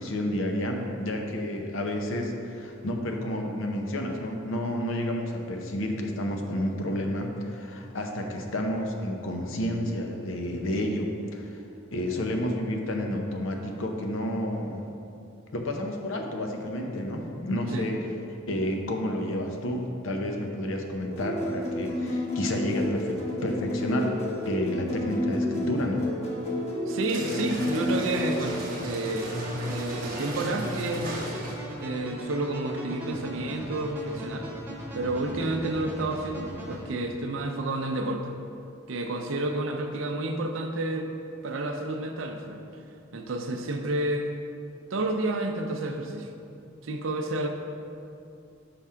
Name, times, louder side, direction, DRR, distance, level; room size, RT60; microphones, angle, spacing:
voice 1, 0.0-11.6 11.9-14.8 15.5-18.0 18.5-24.2 24.5-26.1, left 1 dB, 70° left, 2 dB, 0.7 m, -30 dB
sound 1, 21.1-28.5, left 1 dB, 30° left, 1.0 m, -30 dB
voice 2, 26.9-31.1 31.8-34.5 34.9-38.3 38.9-41.1 41.4-42.6 43.1-44.3 44.9-46.3 46.8-47.5, right 2 dB, 70° right, 4 dB, 0.6 m, -30 dB
sound 2, 27.0-31.8, right 1 dB, 45° right, 1.0 m, -35 dB
sound 3, 29.2-36.8, equal, 10° right, 1.0 m, -39 dB
5.8 x 3.6 x 5.6 m, 2.6 s
head